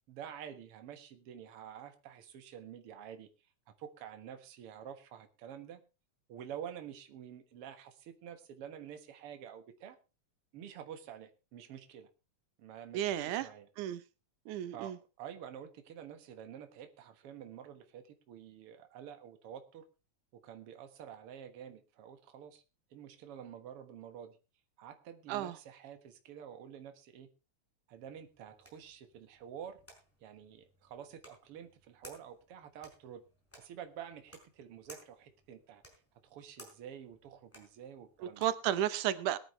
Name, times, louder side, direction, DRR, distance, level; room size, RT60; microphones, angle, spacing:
voice 1, 0.1-3.3 3.8-5.8 6.3-10.0 10.5-12.1 12.6-13.7 14.7-14.9 15.2-19.8 20.4-22.6 22.9-24.4 24.8-27.3 27.9-29.8 30.2-33.2 33.6-35.8 36.2-38.5, right 9 dB, 55° right, 2.2 m, -49 dB
voice 2, 12.9-13.5 13.8-14.0 14.5-15.0 25.3-25.6 38.4-39.4, right 12 dB, 90° right, 2.4 m, -33 dB
sound 1, 28.0-38.7, equal, 5° left, 4.7 m, -59 dB
21.5 x 9.7 x 3.2 m
omnidirectional pair, 3.4 m